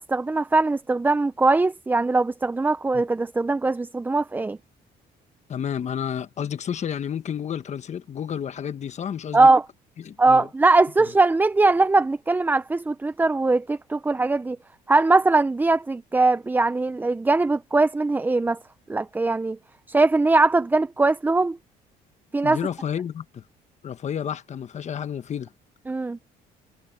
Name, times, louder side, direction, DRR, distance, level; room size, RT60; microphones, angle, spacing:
voice 1, 0.0-4.6 9.3-9.6 10.2-14.6 14.9-18.6 18.9-19.6 19.9-21.6 22.3-22.6 25.9-26.2, right 3 dB, 10° right, 0.4 m, -21 dB
voice 2, 5.5-9.5 10.0-10.5 22.4-23.4 23.8-25.5, left 8 dB, 45° left, 1.3 m, -31 dB
cardioid pair, 110°, 17 cm